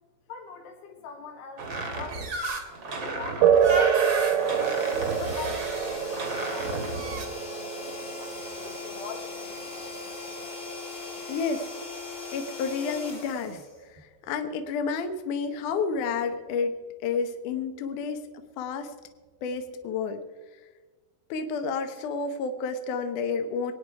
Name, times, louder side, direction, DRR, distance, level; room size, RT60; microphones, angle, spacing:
voice 1, 0.3-2.3 3.0-4.7 5.2-7.4 7.8-9.9, left 4 dB, 85° left, 2 dB, 4.0 m, -43 dB
sound 1, 1.6-7.3, right 2 dB, 50° right, 1.5 m, -33 dB
sound 2, 3.4-11.4, right 8 dB, 75° right, 3.3 m, -27 dB
sound 3, 4.3-14.2, left 3 dB, 30° left, 1.1 m, -39 dB
voice 2, 11.3-11.7 12.3-14.0 14.3-16.8 17.0-18.2 18.6-18.9 19.4-20.2 21.3-23.7, left 5 dB, 70° left, 7 dB, 2.1 m, -30 dB
24.5 x 9.4 x 4.8 m, 1.4 s
omnidirectional pair, 4.6 m